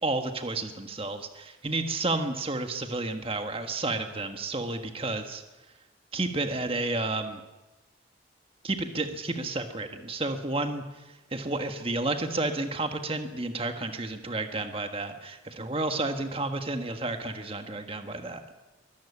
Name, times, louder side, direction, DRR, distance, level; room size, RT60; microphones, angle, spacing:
voice 1, 0.0-5.4 6.1-7.4 8.6-18.4, right 2 dB, 30° right, 6 dB, 1.5 m, -31 dB
23.5 x 14.0 x 8.5 m, 1.1 s
head